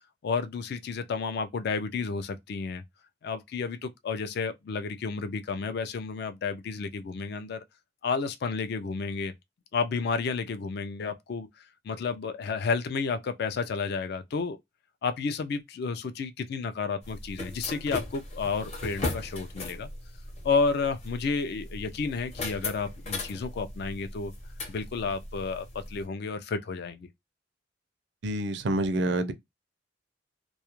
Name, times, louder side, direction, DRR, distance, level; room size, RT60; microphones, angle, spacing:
voice 1, 0.2-2.8 3.2-7.6 8.0-9.3 9.7-11.5 11.8-14.6 15.0-19.9 20.4-24.3 24.7-27.1, left 4 dB, 60° left, 0.4 m, -31 dB
sound 1, 17.0-26.1, left 2 dB, 35° left, 0.7 m, -38 dB
voice 2, 28.2-29.3, right 1 dB, 65° right, 0.5 m, -27 dB
2.3 x 2.0 x 2.9 m
head